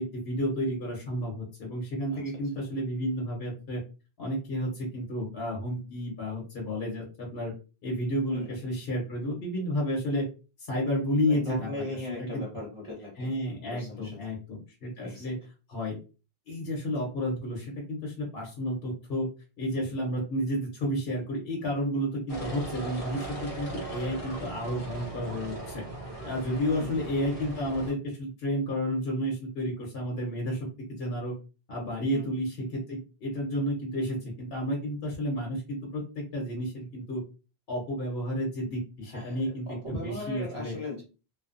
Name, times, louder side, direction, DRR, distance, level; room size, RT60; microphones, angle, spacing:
voice 1, 0.0-3.8 4.2-7.5 7.8-10.3 10.7-12.1 12.3-12.4 13.2-15.3 15.7-16.0 16.5-19.3 19.6-25.8 26.2-31.3 31.7-37.2 37.7-40.7, equal, 70° left, -2 dB, 1.1 m, -31 dB
voice 2, 11.3-13.3 13.7-14.2 15.0-15.3 26.6-27.0 32.1-32.2 39.1-41.0, left 2 dB, 30° right, -4 dB, 0.9 m, -39 dB
sound 1, 22.3-27.9, right 2 dB, 40° left, 0.7 m, -38 dB
2.6 x 2.2 x 2.5 m, 0.33 s
omnidirectional pair, 1.0 m